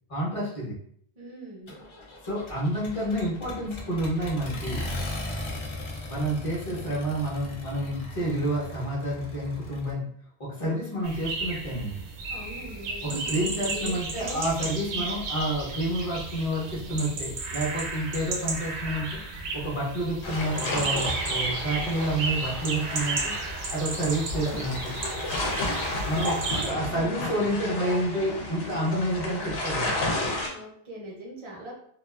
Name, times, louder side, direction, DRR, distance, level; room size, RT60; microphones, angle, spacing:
voice 1, 0.1-0.8 2.2-4.8 6.1-10.0 10.4-12.0 13.0-19.1 19.5-23.3 23.7-24.9 26.0-30.0, right 1 dB, 35° left, -5 dB, 0.8 m, -29 dB
voice 2, 1.2-1.7 12.3-14.5 26.5-27.3 27.8-28.7 30.4-31.7, right 1 dB, 35° right, -4 dB, 0.5 m, -41 dB
Accelerating revving vroom, 1.7-9.9, left 1 dB, 55° left, 0.3 m, -38 dB
sound 1, 11.0-26.7, right 3 dB, 80° right, 0.8 m, -33 dB
sound 2, 20.2-30.5, left 2 dB, 75° left, 0.9 m, -32 dB
2.4 x 2.3 x 2.3 m, 0.65 s
omnidirectional pair, 1.1 m